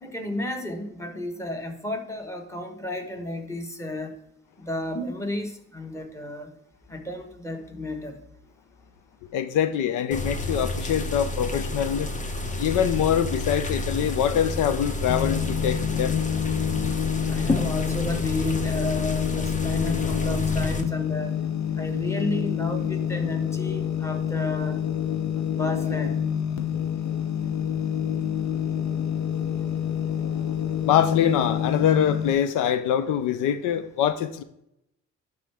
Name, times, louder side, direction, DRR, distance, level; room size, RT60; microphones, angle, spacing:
voice 1, 0.0-4.2 4.6-6.5 6.9-8.2 17.3-21.4 21.8-24.9 25.5-26.2, left 1 dB, 10° left, 1.4 m, -32 dB
voice 2, 9.3-12.1 12.6-16.2 30.8-34.4, left 9 dB, 85° left, 0.6 m, -24 dB
sound 1, 10.1-20.8, left 2 dB, 25° left, 1.0 m, -30 dB
sound 2, 15.1-32.3, left 9 dB, 65° left, 1.0 m, -27 dB
11.0 x 4.6 x 3.5 m
cardioid pair, 90°, 30 cm